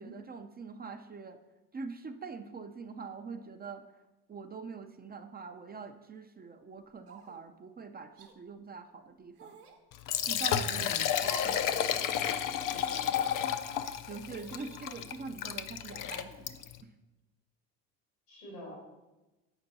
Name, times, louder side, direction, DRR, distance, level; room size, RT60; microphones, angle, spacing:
voice 1, 0.0-1.4 1.7-3.8 4.3-9.6 10.3-13.0 14.1-16.6, right 5 dB, 20° right, 7 dB, 0.5 m, -44 dB
sound 1, 7.1-7.5 8.2-8.3 9.4-9.8 11.1-11.6 12.0-12.1 12.9-13.4 14.3-15.2 16.0-16.5, right 4 dB, 90° right, 0.9 m, -49 dB
Liquid, 9.9-16.8, left 9 dB, 45° left, 0.6 m, -32 dB
voice 2, 10.7-11.6 18.3-18.7, right 1 dB, 85° left, -2 dB, 2.8 m, -47 dB
8.0 x 5.2 x 4.0 m, 1.1 s
hypercardioid pair, 60°, 45 cm